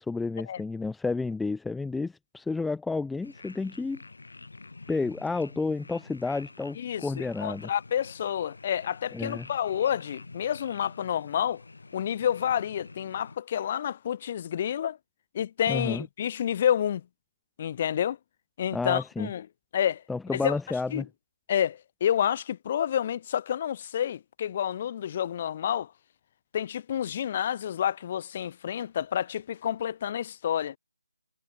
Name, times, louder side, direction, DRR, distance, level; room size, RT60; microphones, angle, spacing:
voice 1, 0.0-4.0 4.9-7.7 9.1-9.5 15.7-16.0 18.7-19.3 20.1-21.1, left 3 dB, 5° left, 0.9 m, -31 dB
sound 1, 3.2-13.4, left 3 dB, 70° left, 6.4 m, -48 dB
voice 2, 6.8-11.6 11.9-15.0 15.3-17.0 17.6-18.2 18.6-19.5 19.7-20.0 20.3-20.6 20.9-21.0 21.5-25.9 26.5-30.8, left 9 dB, 25° left, 2.8 m, -29 dB
figure-of-eight pair, 170°, 0 cm